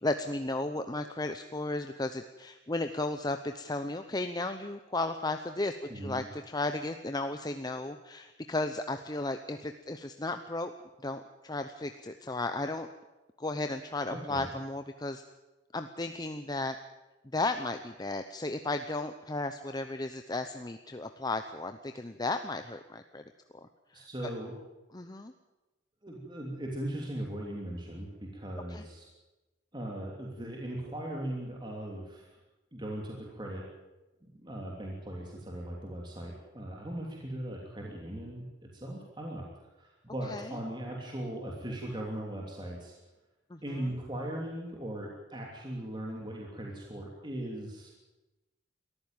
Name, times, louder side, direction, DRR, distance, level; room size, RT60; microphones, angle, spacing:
voice 1, 0.0-10.7 11.0-12.9 13.4-15.2 15.7-16.8 17.3-23.2 23.9-24.1 24.9-25.3 28.7-28.8 40.3-40.5 43.5-43.6, left 2 dB, 20° left, 8 dB, 0.8 m, -34 dB
voice 2, 5.9-6.3 14.1-14.5 23.9-24.5 26.0-29.1 29.7-32.4 32.7-33.7 34.3-39.5 39.8-43.0 43.6-47.9, right 1 dB, 25° right, -1 dB, 3.0 m, -39 dB
22.5 x 14.5 x 9.0 m, 1.1 s
head